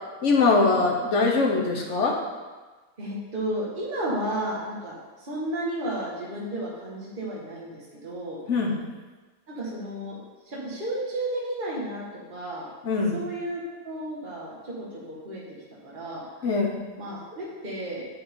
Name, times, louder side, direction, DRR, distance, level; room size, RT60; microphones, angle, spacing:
voice 1, 0.2-2.2 8.5-8.8 12.8-13.2 16.4-16.8, left 3 dB, 45° left, 0 dB, 1.2 m, -22 dB
voice 2, 3.0-8.4 9.5-10.2 10.5-12.7 13.1-15.4 15.8-16.2 17.0-18.0, right 1 dB, 25° right, -5 dB, 2.0 m, -33 dB
7.7 x 7.6 x 3.9 m, 1.3 s
omnidirectional pair, 2.2 m